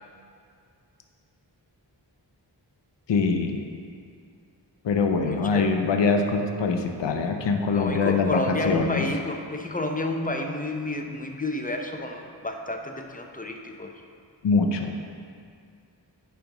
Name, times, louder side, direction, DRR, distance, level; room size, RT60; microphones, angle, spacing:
voice 1, 3.1-3.6 4.8-9.0 14.4-14.9, left 4 dB, 70° left, 4 dB, 0.6 m, -23 dB
voice 2, 5.2-5.7 7.7-13.9, left 1 dB, 20° left, 3 dB, 0.7 m, -30 dB
10.5 x 5.1 x 3.0 m, 2.3 s
wide cardioid pair, 55°, 44 cm